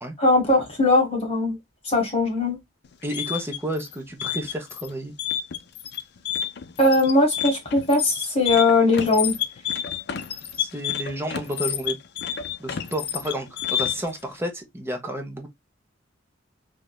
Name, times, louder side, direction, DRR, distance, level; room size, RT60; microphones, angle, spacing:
voice 1, 0.2-1.6 1.8-2.6 6.8-9.3, left 2 dB, 35° left, 1.5 m, -20 dB
sound 1, 2.8-14.2, left 9 dB, 60° left, 0.4 m, -29 dB
voice 2, 3.0-5.1 10.6-12.0 12.6-15.5, equal, 15° right, 0.8 m, -31 dB
3.3 x 2.8 x 2.2 m
head